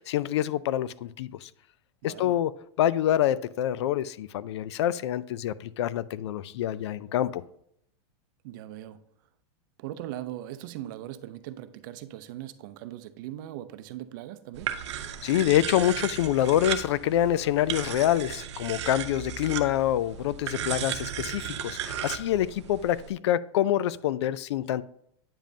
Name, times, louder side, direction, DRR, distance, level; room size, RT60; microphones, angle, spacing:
voice 1, 0.0-1.5 2.0-2.5 2.8-7.4 15.2-24.8, left 12 dB, 75° left, 0.4 m, -26 dB
voice 2, 2.0-2.4 8.4-9.0 9.8-14.7, right 13 dB, 45° right, 0.5 m, -40 dB
sound 1, 14.5-23.1, right 9 dB, 80° right, 0.7 m, -35 dB
8.9 x 5.1 x 2.7 m
supercardioid pair, 160°, 14 cm